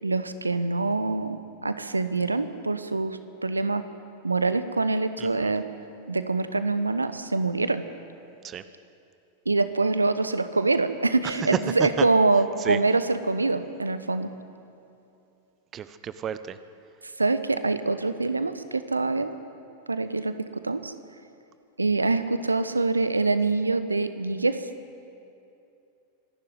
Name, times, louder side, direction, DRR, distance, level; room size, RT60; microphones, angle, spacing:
voice 1, 0.0-3.8 4.2-5.7 6.1-7.8 9.4-14.3 17.2-19.4 19.9-20.9 21.8-24.6, right 3 dB, 80° right, 12 dB, 1.0 m, -25 dB
voice 2, 5.2-5.5 8.4-8.6 11.8-12.1 12.6-12.8 15.7-16.6, right 9 dB, 25° right, 13 dB, 0.9 m, -31 dB
26.0 x 12.0 x 9.7 m, 2.6 s
figure-of-eight pair, 90°, 0 cm